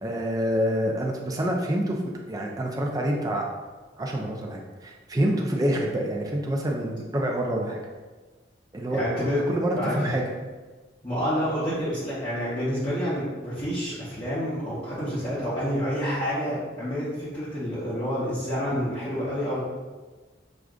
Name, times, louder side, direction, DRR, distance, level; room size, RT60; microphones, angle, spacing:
voice 1, 0.0-2.0 2.3-3.5 4.0-7.8 8.7-9.0 9.5-10.2, right 1 dB, 20° right, 0 dB, 0.4 m, -27 dB
voice 2, 8.9-9.4 9.8-10.1 11.0-19.6, equal, 25° left, -12 dB, 0.9 m, -28 dB
6.2 x 2.4 x 2.4 m, 1.3 s
head